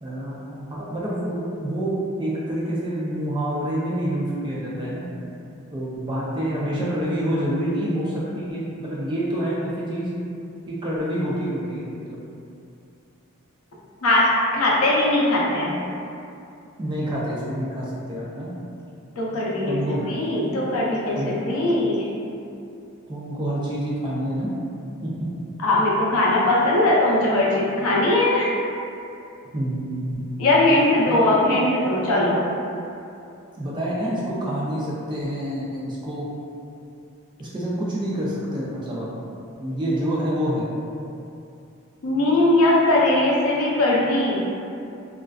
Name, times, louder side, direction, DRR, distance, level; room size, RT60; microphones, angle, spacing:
voice 1, 0.0-5.1 5.7-10.1 10.7-12.2 16.8-18.5 19.7-20.1 21.2-21.3 23.1-24.5 25.0-25.1 29.5-30.2 30.7-30.8 31.1-31.3 33.5-36.3 37.4-39.1 39.6-40.7, right 1 dB, 20° right, -7 dB, 0.3 m, -27 dB
voice 2, 14.0-15.8 19.2-19.8 20.1-22.1 25.6-28.5 30.4-32.5 42.0-44.4, left 1 dB, 85° left, -4 dB, 0.5 m, -20 dB
2.4 x 2.2 x 2.3 m, 2.6 s
head